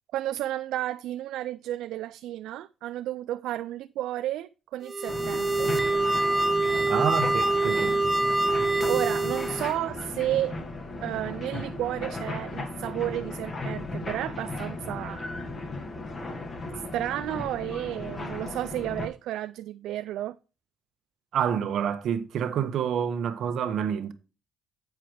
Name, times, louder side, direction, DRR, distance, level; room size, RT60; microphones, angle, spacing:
voice 1, 0.1-5.7 8.9-10.6 11.0-15.2 16.9-20.4, right 13 dB, 85° right, 0.3 m, -32 dB
sound 1, 4.8-9.7, right 2 dB, 15° right, 0.5 m, -25 dB
sound 2, 5.1-19.1, left 2 dB, 40° left, 2.1 m, -36 dB
voice 2, 6.9-8.0 21.3-24.1, right 8 dB, 70° right, 1.1 m, -28 dB
9.3 x 4.9 x 4.8 m
cardioid pair, 90°, 0 cm